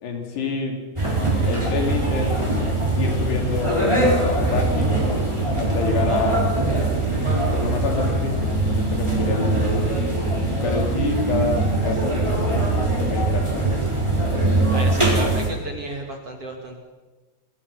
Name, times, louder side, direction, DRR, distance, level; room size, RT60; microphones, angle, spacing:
voice 1, 0.0-0.8 1.4-2.4 3.0-3.9 4.4-5.0 5.6-6.6 7.5-9.9 10.6-13.7, left 4 dB, 70° left, 2 dB, 5.2 m, -28 dB
sound 1, 1.0-15.5, right 2 dB, 5° right, 3.9 m, -22 dB
voice 2, 14.7-16.8, right 2 dB, 45° right, 2 dB, 2.4 m, -33 dB
28.5 x 21.0 x 5.7 m, 1.2 s
omnidirectional pair, 5.1 m